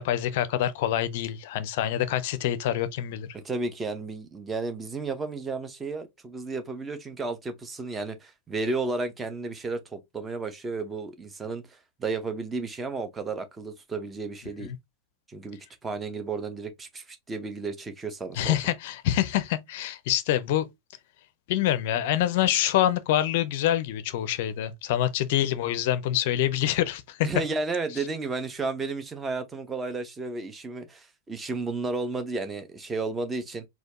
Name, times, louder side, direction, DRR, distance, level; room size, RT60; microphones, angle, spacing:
voice 1, 0.0-3.3 14.6-14.8 18.4-20.7 21.5-27.3, left 12 dB, 50° left, 0.5 m, -26 dB
voice 2, 3.3-14.7 15.3-18.6 27.2-33.6, right 3 dB, 15° right, 0.7 m, -33 dB
4.2 x 2.3 x 2.8 m
figure-of-eight pair, 90°, 0 cm